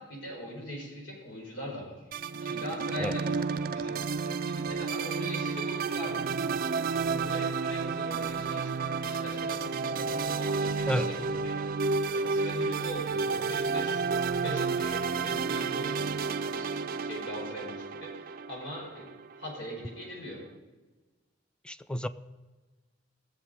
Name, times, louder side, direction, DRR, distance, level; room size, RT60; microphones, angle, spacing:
voice 1, 0.0-2.1 2.4-6.3 6.7-11.6 12.1-14.1 14.4-20.4, equal, 75° left, -1 dB, 5.0 m, -42 dB
sound 1, 2.1-19.5, right 4 dB, 50° right, 0.5 m, -31 dB
voice 2, 21.6-22.1, equal, 5° left, 13 dB, 0.4 m, -30 dB
18.0 x 7.5 x 5.1 m, 1.3 s
head